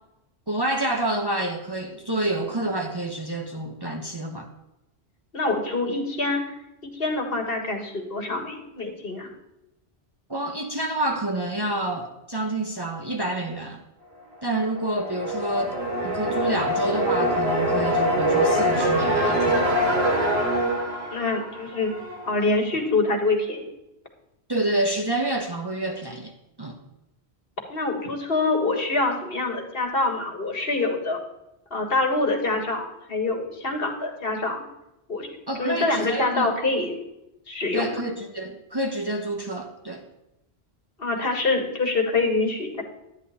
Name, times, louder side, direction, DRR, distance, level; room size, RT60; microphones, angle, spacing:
voice 1, 0.5-4.5 10.3-13.8 14.4-19.7 24.5-26.3 26.6-26.8 35.5-36.5 37.7-40.0, right 1 dB, 25° right, 2 dB, 1.0 m, -28 dB
voice 2, 5.3-6.4 6.9-9.3 21.1-21.9 22.2-23.7 27.7-31.2 31.7-34.6 35.1-35.3 35.6-37.0 37.5-38.0 41.0-42.8, left 3 dB, 60° left, 3 dB, 1.9 m, -25 dB
sound 1, 14.6-22.3, equal, 65° right, 2.2 m, -24 dB
12.0 x 9.7 x 4.2 m, 0.90 s
omnidirectional pair, 1.1 m